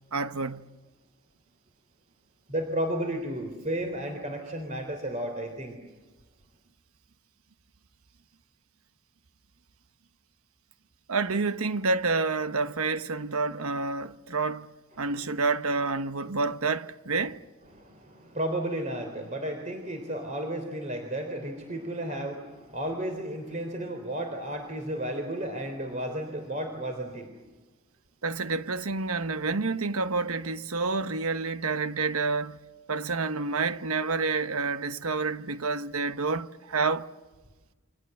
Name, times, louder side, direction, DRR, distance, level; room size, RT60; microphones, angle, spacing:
voice 1, 0.1-0.7 11.1-14.7 15.0-17.4 28.2-32.6 32.9-37.1, right 4 dB, 80° right, 1.1 m, -28 dB
voice 2, 2.5-5.8 15.0-15.1 17.7-27.4, right 1 dB, 35° right, 3.6 m, -33 dB
29.5 x 25.0 x 7.9 m
head